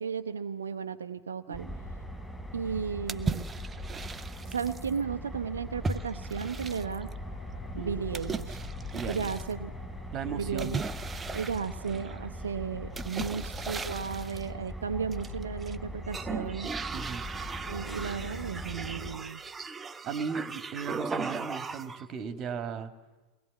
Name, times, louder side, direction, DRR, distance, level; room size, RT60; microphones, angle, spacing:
voice 1, 0.0-1.7 2.5-3.5 4.5-7.1 7.7-8.6 9.1-9.7 10.3-10.8 11.3-16.7 17.7-19.4, right 6 dB, 70° right, 7 dB, 0.7 m, -34 dB
sound 1, 1.5-19.2, equal, ahead, 5.0 m, -41 dB
voice 2, 1.5-1.8 7.7-8.0 8.9-9.3 10.1-10.8 16.9-17.2 20.0-22.9, right 6 dB, 30° right, 11 dB, 1.6 m, -36 dB
sound 2, 3.1-4.9 5.8-7.1 8.1-9.5 10.6-12.3 12.9-14.5 15.1-15.7 16.1-22.1, right 4 dB, 15° right, 0.6 m, -37 dB
sound 3, 5.7-15.9, left 5 dB, 50° left, 2.9 m, -50 dB
23.0 x 19.5 x 8.3 m, 1.2 s
figure-of-eight pair, 90°, 0 cm